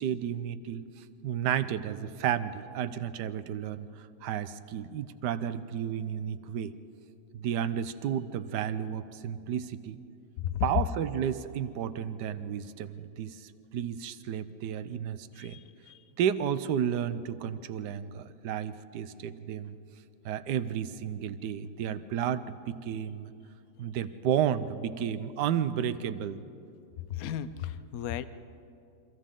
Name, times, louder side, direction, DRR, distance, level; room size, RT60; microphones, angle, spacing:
voice 1, 0.0-6.7 7.3-10.0 10.6-15.6 16.2-19.8 20.2-23.3 23.8-26.4, right 9 dB, 80° right, 12 dB, 1.3 m, -32 dB
voice 2, 27.2-28.2, left 11 dB, 65° left, 13 dB, 1.1 m, -34 dB
29.0 x 25.0 x 3.8 m, 2.6 s
omnidirectional pair, 1.8 m